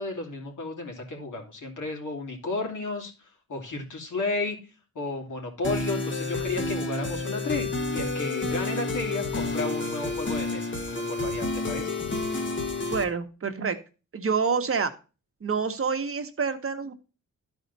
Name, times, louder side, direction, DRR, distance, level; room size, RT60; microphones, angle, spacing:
voice 1, 0.0-4.6 4.9-11.9, left 3 dB, 75° left, 2 dB, 2.8 m, -33 dB
sound 1, 5.6-13.0, left 2 dB, 40° left, 1.4 m, -30 dB
voice 2, 12.9-13.8 14.1-14.9 15.4-16.9, right 5 dB, 45° right, 7 dB, 1.1 m, -27 dB
12.0 x 4.5 x 4.0 m, 0.32 s
wide cardioid pair, 105°, 31 cm